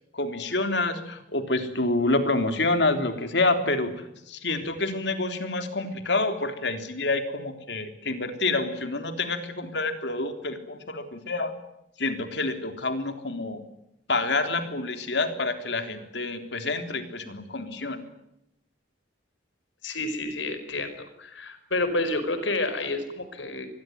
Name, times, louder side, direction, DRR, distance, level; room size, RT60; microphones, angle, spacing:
voice 1, 0.1-11.5 12.0-13.6 14.1-18.1, left 2 dB, 65° left, 7 dB, 3.6 m, -28 dB
voice 2, 19.8-23.7, left 2 dB, 85° left, 10 dB, 4.9 m, -29 dB
25.5 x 21.5 x 9.4 m, 0.82 s
head